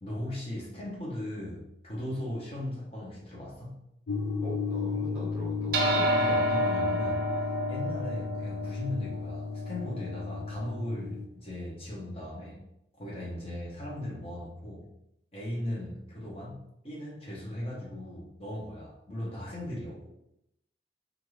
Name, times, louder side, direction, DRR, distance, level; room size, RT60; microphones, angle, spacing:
voice 1, 0.0-3.8 6.1-12.6 13.0-14.9 15.3-20.1, left 1 dB, 35° left, -6 dB, 0.9 m, -38 dB
sound 1, 4.1-11.3, left 4 dB, 65° left, 0.4 m, -34 dB
voice 2, 4.4-6.3, equal, 10° right, -8 dB, 0.8 m, -41 dB
sound 2, 5.7-10.4, right 1 dB, 55° right, 0.5 m, -29 dB
2.6 x 2.5 x 3.1 m, 0.82 s
head